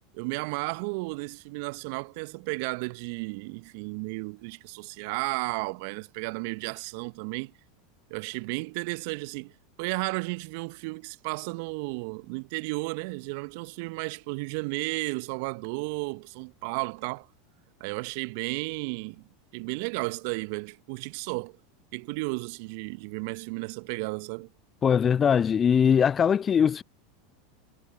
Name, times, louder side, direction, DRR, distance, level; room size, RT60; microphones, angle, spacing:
voice 1, 0.1-7.5 8.1-9.5 9.8-17.3 17.8-21.6 21.9-24.5, right 29 dB, 55° right, 1.4 m, -33 dB
voice 2, 24.8-26.8, left 7 dB, 30° left, 0.3 m, -21 dB
figure-of-eight pair, 85°, 0 cm